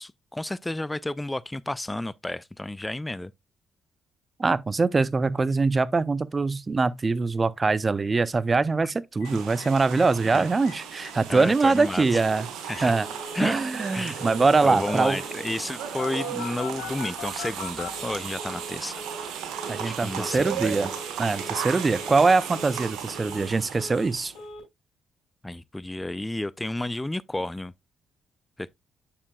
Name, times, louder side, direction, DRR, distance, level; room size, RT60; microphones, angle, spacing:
voice 1, 0.0-3.3 8.8-8.9 10.3-10.5 11.3-12.2 12.7-12.9 13.3-13.6 13.9-14.3 14.6-19.0 19.8-20.8 25.4-27.7 28.6-28.7, left 1 dB, 15° left, 0.4 m, -31 dB
voice 2, 4.4-12.5 12.8-13.1 13.4-15.2 19.7-20.9 21.2-24.3, right 3 dB, 35° right, 0.5 m, -23 dB
Telephone, 9.2-9.3 9.6-9.7 9.9-10.0 10.3-10.7 11.0-11.1 11.4-11.7 12.1-12.2 12.7-13.4 14.1-14.4 14.6-15.4 16.0-18.7 18.9-19.3 19.5-19.9 20.1-20.5 20.7-21.1 21.3-21.7 21.9-22.3 22.5-23.5 23.7-24.1 24.3-24.6, left 4 dB, 80° left, 3.4 m, -41 dB
sound 1, 9.2-24.4, right 8 dB, 75° right, 1.5 m, -36 dB
8.7 x 6.7 x 2.3 m
hypercardioid pair, 50°, 0 cm